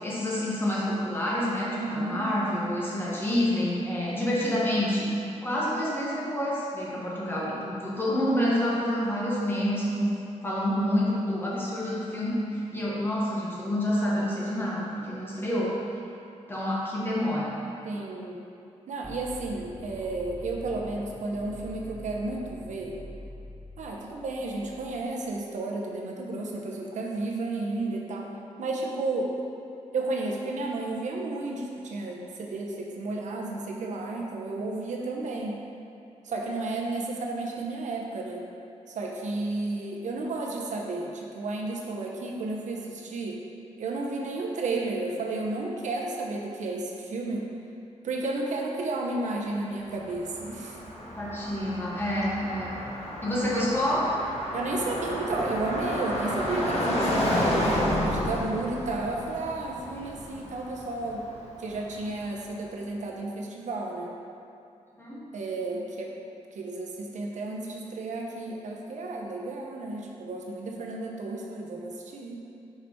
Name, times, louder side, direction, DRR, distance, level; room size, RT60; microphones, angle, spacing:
voice 1, 0.0-5.1 5.4-10.1 10.4-15.7 16.5-17.5 51.2-52.7 53.2-54.1 59.9-60.4 65.0-65.2, left 1 dB, 15° left, -6 dB, 1.5 m, -28 dB
voice 2, 1.7-2.3 17.8-18.4 18.9-22.9 23.8-28.3 28.6-29.3 29.9-35.6 36.2-38.4 38.9-43.4 43.8-47.5 48.0-50.8 53.3-53.7 54.5-61.2 61.6-64.1 65.3-66.1 66.5-72.4, right 2 dB, 85° right, -1 dB, 0.9 m, -32 dB
sound 1, 19.0-25.0, left 1 dB, 10° right, 0.4 m, -44 dB
Car passing by, 49.9-61.9, left 1 dB, 60° left, 1.3 m, -31 dB
5.9 x 5.2 x 4.5 m, 2.6 s
wide cardioid pair, 130°, 12 cm